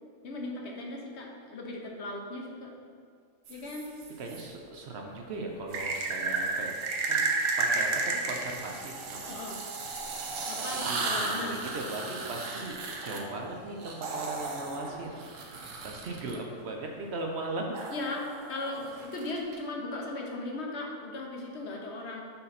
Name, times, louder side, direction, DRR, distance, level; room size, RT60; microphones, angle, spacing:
voice 1, 0.2-2.7 3.5-3.9 9.3-9.6 10.5-11.6 17.9-22.2, left 2 dB, 60° left, 0 dB, 1.0 m, -37 dB
sound 1, 3.5-4.4 5.7-16.3 17.7-19.6, right 3 dB, 80° right, 1.1 m, -33 dB
voice 2, 4.2-6.7 7.1-7.2 7.6-9.4 10.8-15.2 15.5-17.7, right 2 dB, 60° right, 1 dB, 0.8 m, -38 dB
5.7 x 4.0 x 4.1 m, 2.1 s
omnidirectional pair, 1.3 m